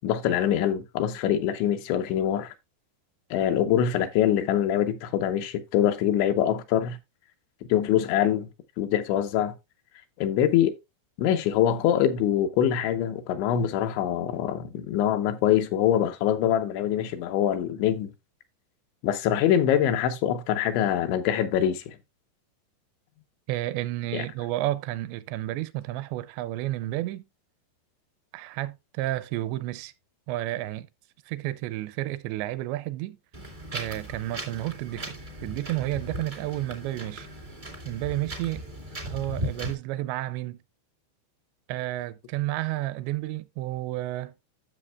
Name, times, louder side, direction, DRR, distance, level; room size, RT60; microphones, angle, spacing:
voice 1, 0.0-2.5 3.3-7.0 7.7-8.5 8.8-9.5 10.2-10.7 11.2-18.1 19.0-22.0 24.1-24.3, left 10 dB, 85° left, 3.3 m, -24 dB
voice 2, 23.5-27.2 28.3-29.9 30.3-30.9 31.3-33.2 33.7-37.3 37.9-38.6 39.1-40.6 41.7-44.3, right 16 dB, 85° right, 2.7 m, -31 dB
Wind, 33.3-39.7, right 1 dB, 50° right, 0.5 m, -37 dB
12.5 x 6.8 x 2.2 m
omnidirectional pair, 5.1 m